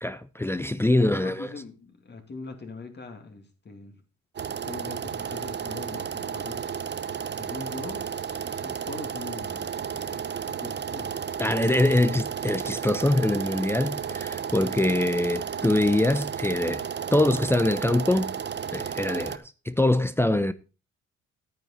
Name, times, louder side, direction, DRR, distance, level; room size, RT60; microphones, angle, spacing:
voice 1, 0.0-1.5 11.4-16.8 17.1-18.4 18.7-20.5, left 1 dB, 10° left, 0.6 m, -24 dB
voice 2, 0.7-4.0 4.6-6.6 7.3-8.1 8.5-11.1, left 3 dB, 35° left, 2.6 m, -41 dB
sound 1, 4.4-19.4, right 7 dB, 35° right, 0.8 m, -33 dB
11.0 x 9.2 x 4.2 m
cardioid pair, 90°, 30 cm